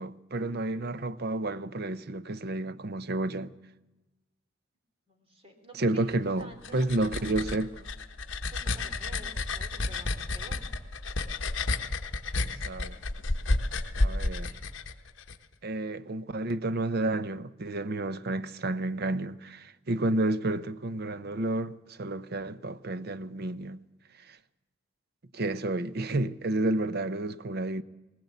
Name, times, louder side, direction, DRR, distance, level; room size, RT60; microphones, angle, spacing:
voice 1, 0.0-3.5 5.8-7.9 12.3-13.0 13.9-14.5 15.6-23.8 24.2-24.4 25.3-27.8, right 2 dB, 50° right, 0.7 m, -31 dB
voice 2, 5.1-6.1 6.4-7.5 8.5-10.6, right 1 dB, 30° right, 3.1 m, -50 dB
sound 1, 6.4-15.4, left 2 dB, 60° left, 1.2 m, -31 dB
19.5 x 19.5 x 8.3 m
head